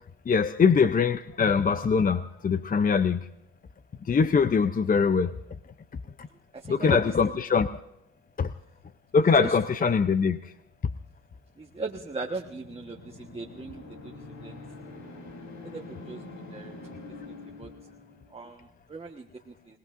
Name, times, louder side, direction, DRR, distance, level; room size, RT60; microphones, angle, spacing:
voice 1, 0.3-3.2 4.1-5.3 6.2-6.3 6.7-7.7 8.4-8.5 9.1-10.5, left 5 dB, 30° left, 0.6 m, -23 dB
voice 2, 6.5-7.4 9.2-9.9 11.6-14.6 15.7-16.2 16.5-16.7 17.2-17.7 18.3-19.8, right 3 dB, 20° right, 1.3 m, -39 dB
sound 1, 11.5-18.5, left 2 dB, 70° left, 3.8 m, -45 dB
27.0 x 18.0 x 2.6 m
cardioid pair, 90°, 30 cm